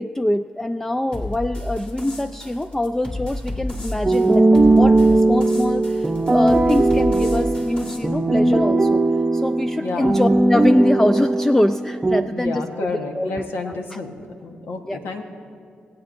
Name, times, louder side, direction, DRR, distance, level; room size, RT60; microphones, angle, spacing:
voice 1, 0.0-9.0 9.3-13.3 13.6-14.0 14.8-15.0, left 1 dB, 10° left, 9 dB, 0.3 m, -24 dB
sound 1, 1.1-8.0, left 1 dB, 25° left, 2.6 m, -32 dB
sound 2, 4.0-12.2, right 2 dB, 20° right, 0.7 m, -18 dB
voice 2, 9.8-10.2 12.2-14.1 14.4-15.2, left 3 dB, 75° left, 4 dB, 1.2 m, -30 dB
23.0 x 8.5 x 2.6 m, 2.3 s
supercardioid pair, 50°, 4 cm